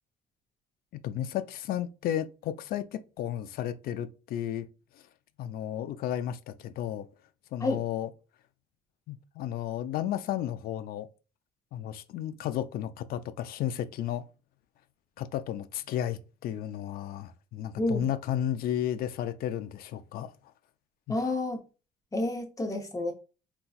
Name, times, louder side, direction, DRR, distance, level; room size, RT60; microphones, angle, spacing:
voice 1, 1.0-4.7 5.4-7.1 7.5-8.1 9.1-11.1 11.7-14.2 15.2-20.3 21.1-21.2, left 11 dB, 60° left, 0.4 m, -33 dB
voice 2, 21.1-21.6 22.1-23.1, left 2 dB, 20° left, 0.8 m, -29 dB
4.0 x 2.3 x 2.4 m
cardioid pair, 110°, 17 cm